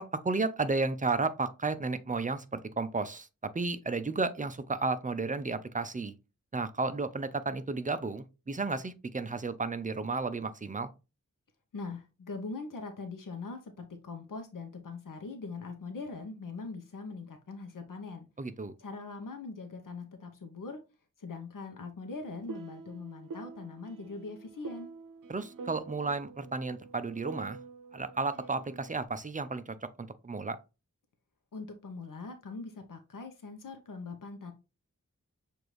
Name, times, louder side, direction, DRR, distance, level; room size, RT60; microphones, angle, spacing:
voice 1, 0.0-6.1 6.5-10.9 18.4-18.7 25.3-27.6 27.9-30.6, right 3 dB, 25° right, 0.5 m, -33 dB
voice 2, 11.7-18.3 18.8-20.8 21.2-24.9 31.5-34.5, left 4 dB, 80° left, 0.8 m, -42 dB
sound 1, 22.1-29.0, right 4 dB, 80° right, 0.6 m, -47 dB
6.6 x 2.6 x 3.0 m
wide cardioid pair, 75°, 32 cm